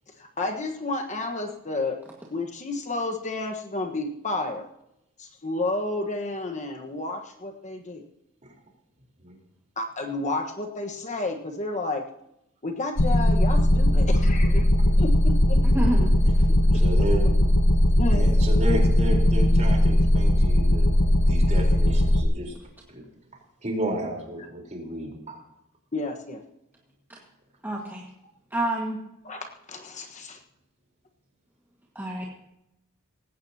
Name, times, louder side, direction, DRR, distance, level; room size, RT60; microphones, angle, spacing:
voice 1, 0.2-2.0 2.3-4.7 5.2-8.0 9.8-12.0 12.6-14.7 15.0-15.6 16.5-17.1 18.0-18.3 25.9-26.4 29.2-30.4, left 2 dB, 35° left, 4 dB, 1.4 m, -31 dB
sound 1, 13.0-22.2, left 1 dB, 65° left, 1.1 m, -19 dB
voice 2, 15.6-16.2 27.1-27.2 27.6-28.0 28.5-29.0 31.9-32.2, right 1 dB, 10° right, -2 dB, 1.8 m, -28 dB
voice 3, 16.7-17.3 18.1-22.5 22.9-23.0 23.6-25.4, right 1 dB, 35° right, 0 dB, 4.1 m, -32 dB
19.0 x 16.5 x 2.9 m, 0.83 s
head